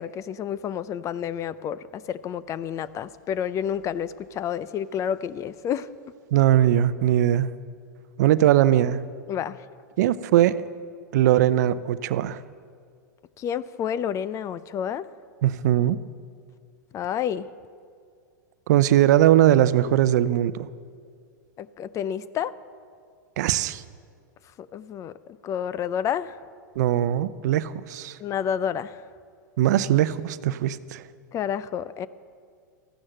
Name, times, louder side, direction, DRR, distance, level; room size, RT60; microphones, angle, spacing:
voice 1, 0.0-5.9 9.3-9.6 13.4-15.1 16.9-17.5 21.6-22.5 24.6-25.2 25.4-26.4 28.2-29.0 31.3-32.1, left 9 dB, 30° left, 17 dB, 0.6 m, -29 dB
voice 2, 6.3-7.5 8.2-9.0 10.0-10.5 11.1-12.4 15.4-16.0 18.7-20.7 23.4-23.8 26.8-28.2 29.6-31.0, right 12 dB, 65° right, 15 dB, 0.6 m, -20 dB
14.5 x 12.0 x 7.7 m, 2.2 s
hypercardioid pair, 105°, 10 cm